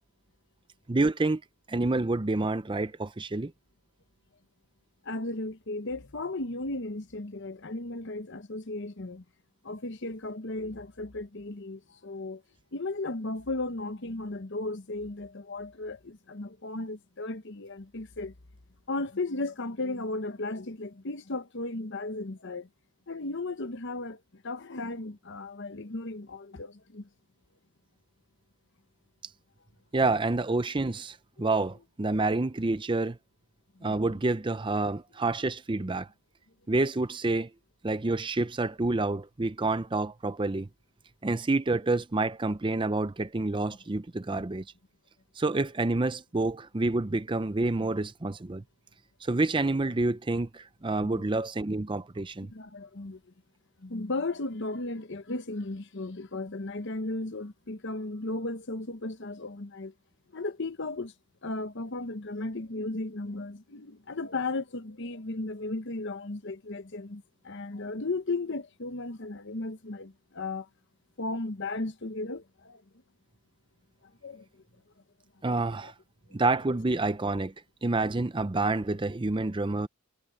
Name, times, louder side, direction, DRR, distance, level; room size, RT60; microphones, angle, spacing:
voice 1, 0.9-1.4 1.7-3.5 29.9-33.2 33.8-36.1 36.7-37.5 37.8-40.7 41.2-44.6 45.4-48.6 49.2-52.5 75.4-75.9 76.3-77.5 77.8-79.9, right 2 dB, 20° right, 0.5 m, -28 dB
voice 2, 5.0-9.2 9.6-12.4 12.7-18.3 18.9-22.7 23.1-27.1 31.4-31.5 32.1-32.4 33.8-34.1 44.3-44.4 51.0-51.2 52.4-53.2 53.8-59.9 60.3-61.1 61.4-70.7 71.2-72.8 74.2-74.6 75.5-75.9, left 2 dB, 55° left, 1.0 m, -35 dB
head